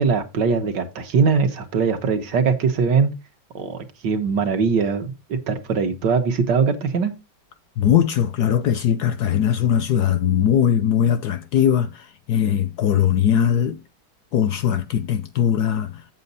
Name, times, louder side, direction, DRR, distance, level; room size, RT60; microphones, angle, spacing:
voice 1, 0.0-3.1 3.6-7.1, right 5 dB, 65° right, 1.8 m, -21 dB
voice 2, 7.8-13.8 14.3-16.0, left 9 dB, 70° left, 1.0 m, -20 dB
8.1 x 7.6 x 4.0 m
omnidirectional pair, 2.1 m